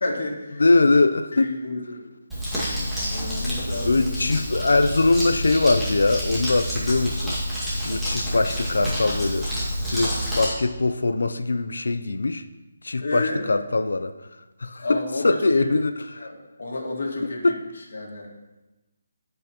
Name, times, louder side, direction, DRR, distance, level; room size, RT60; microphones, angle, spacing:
voice 1, 0.0-0.6 1.3-2.0 3.1-4.3 4.6-4.7 8.3-8.5 13.0-13.5 14.8-15.7 16.2-17.5 17.9-18.3, left 2 dB, 70° left, 0 dB, 1.9 m, -31 dB
voice 2, 0.6-1.5 3.9-7.4 7.9-9.5 9.9-12.4 12.8-14.1 14.6-16.3 17.2-17.6, left 3 dB, 85° left, 9 dB, 0.5 m, -22 dB
Crumpling crinkling, 2.3-10.5, equal, ahead, 2.0 m, -28 dB
13.5 x 5.5 x 3.0 m, 1.1 s
hypercardioid pair, 165°, 0 cm